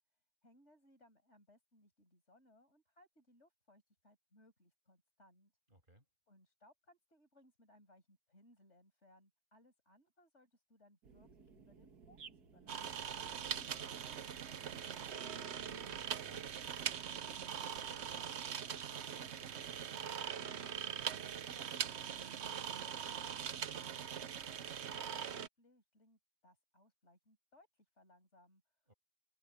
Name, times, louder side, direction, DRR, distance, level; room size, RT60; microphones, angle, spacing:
voice 1, 0.4-5.5 6.3-13.0 21.4-24.3 24.6-28.9, left 1 dB, 45° left, 6.4 m, -67 dB
voice 2, 5.7-6.0 13.3-14.7 15.3-16.7 17.3-21.0 28.9-29.0, right 1 dB, 30° right, 7.6 m, -64 dB
sound 1, 11.0-18.2, right 6 dB, 85° right, 2.2 m, -59 dB
sound 2, 12.7-25.5, right 8 dB, 55° right, 0.9 m, -42 dB
omnidirectional pair, 1.6 m